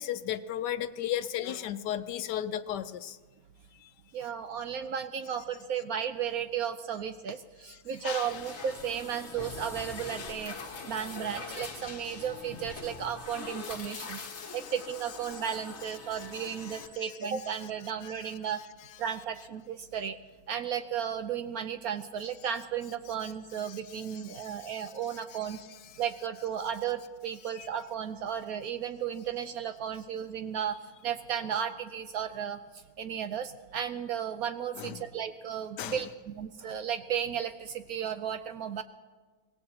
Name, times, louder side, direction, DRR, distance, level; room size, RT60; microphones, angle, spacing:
voice 1, 0.0-3.2 3.8-3.9 8.0-8.4 14.1-14.7 15.3-15.4 16.1-17.1 18.0-18.4 23.2-23.3 23.6-25.6 27.6-27.7 34.8-35.0 35.8-36.1, left 11 dB, 75° left, 12 dB, 1.2 m, -37 dB
voice 2, 4.1-14.2 14.5-18.6 19.0-20.2 20.5-25.6 26.0-38.8, right 8 dB, 65° right, 9 dB, 1.0 m, -34 dB
sound 1, 8.2-16.9, left 4 dB, 40° left, 1.3 m, -43 dB
24.5 x 19.0 x 2.9 m, 1.4 s
omnidirectional pair, 1.9 m